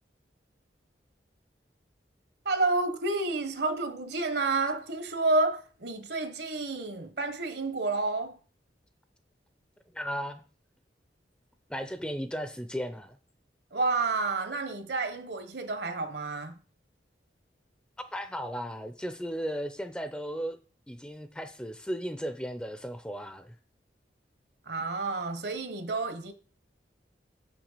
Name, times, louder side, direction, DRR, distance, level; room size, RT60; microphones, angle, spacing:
voice 1, 2.4-8.4 13.7-16.6 24.7-26.3, right 3 dB, 65° right, 1.2 m, -30 dB
voice 2, 9.9-10.4 11.7-13.2 18.0-20.6 20.9-23.6, equal, 5° left, 0.5 m, -35 dB
7.7 x 6.1 x 6.6 m
head